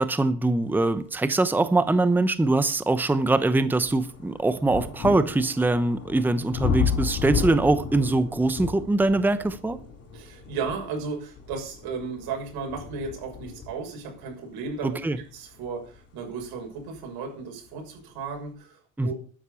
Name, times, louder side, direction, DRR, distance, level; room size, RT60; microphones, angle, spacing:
voice 1, 0.0-9.8 14.8-15.2 19.0-19.1, right 2 dB, 5° right, 0.8 m, -23 dB
sound 1, 1.8-1.9 2.4-17.1 18.0-18.1, left 6 dB, 40° left, 4.8 m, -34 dB
voice 2, 10.1-15.0 15.3-19.1, right 5 dB, 80° right, 6.8 m, -35 dB
12.5 x 10.0 x 7.0 m
cardioid pair, 135°, 37 cm